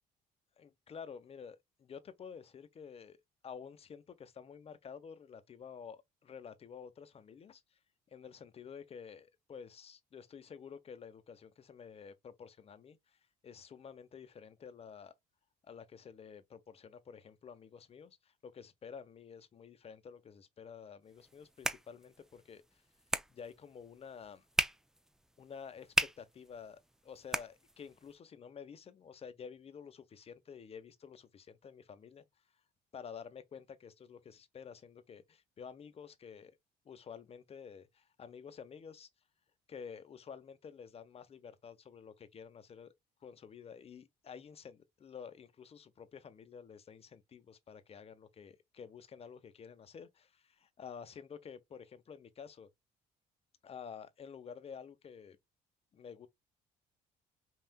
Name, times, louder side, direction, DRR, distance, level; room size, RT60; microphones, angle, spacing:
voice 1, 0.6-3.2 3.4-7.8 8.1-15.1 15.6-22.8 23.3-24.4 25.4-32.3 32.9-36.6 36.8-39.1 39.7-42.9 43.2-52.7 53.6-55.4 55.9-56.3, left 6 dB, 35° left, 0.8 m, -50 dB
sound 1, 21.1-28.1, right 1 dB, 5° right, 0.3 m, -39 dB
5.7 x 2.5 x 2.2 m
cardioid pair, 110°, 17 cm